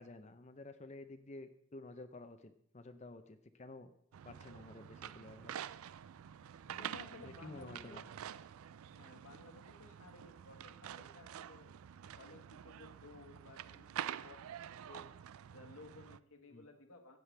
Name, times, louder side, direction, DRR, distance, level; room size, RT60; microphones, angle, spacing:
voice 1, 0.0-3.9 4.2-5.5 7.2-8.0 16.5-16.6, left 2 dB, 30° left, 9 dB, 0.6 m, -51 dB
sound 1, 4.1-16.2, right 9 dB, 70° right, 0.3 m, -48 dB
voice 2, 6.7-8.0 8.9-11.7 12.1-15.1 15.4-17.2, left 2 dB, 70° left, 4 dB, 1.6 m, -57 dB
15.5 x 9.4 x 3.4 m, 0.70 s
head